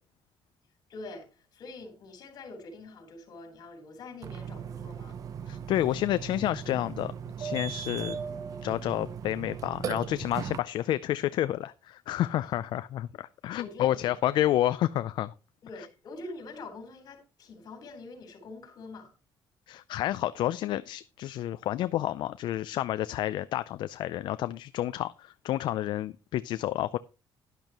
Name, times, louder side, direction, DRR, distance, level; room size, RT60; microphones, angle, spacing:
voice 1, 0.9-5.2 5.8-6.1 12.3-12.5 13.4-14.1 15.6-19.1, left 2 dB, 50° left, 3.8 m, -45 dB
Burping eructation, 4.2-10.6, right 7 dB, 45° right, 0.7 m, -38 dB
voice 2, 5.5-7.1 7.4-8.2 8.6-15.3 19.7-27.0, left 13 dB, 65° left, 0.4 m, -30 dB
12.0 x 10.5 x 3.0 m
cardioid pair, 160°, 8 cm